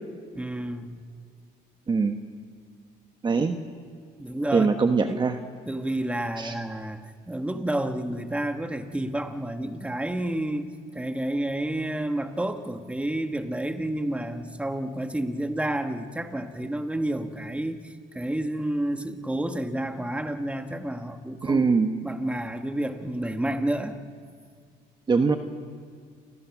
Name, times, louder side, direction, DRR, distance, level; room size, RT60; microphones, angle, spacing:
voice 1, 0.3-1.0 4.2-5.4 5.7-10.7 10.9-21.6 22.0-24.0, right 1 dB, 5° right, 7 dB, 1.6 m, -30 dB
voice 2, 3.2-3.6 4.5-5.4 6.4-6.5 21.4-22.0 25.1-25.4, right 4 dB, 25° right, 7 dB, 1.2 m, -22 dB
29.0 x 23.5 x 6.1 m, 2.1 s
cardioid pair, 110°, 17 cm